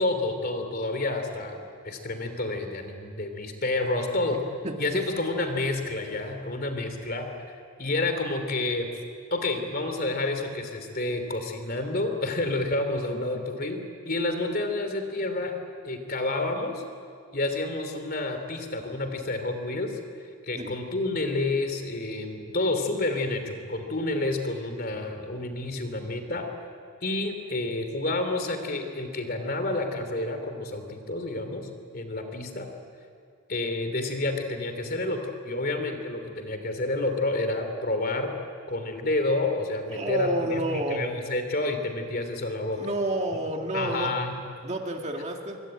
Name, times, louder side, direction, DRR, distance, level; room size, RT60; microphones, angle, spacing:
voice 1, 0.0-1.6 1.8-4.4 4.8-8.9 9.3-15.5 15.8-16.8 17.3-20.0 20.5-26.4 27.0-31.7 31.9-32.7 33.5-38.3 38.7-42.8 43.7-44.3, left 2 dB, 40° left, 6 dB, 3.0 m, -29 dB
voice 2, 39.9-41.1 42.8-44.1 44.6-45.6, right 1 dB, 30° right, 2 dB, 2.1 m, -29 dB
25.5 x 24.0 x 9.1 m, 2.5 s
head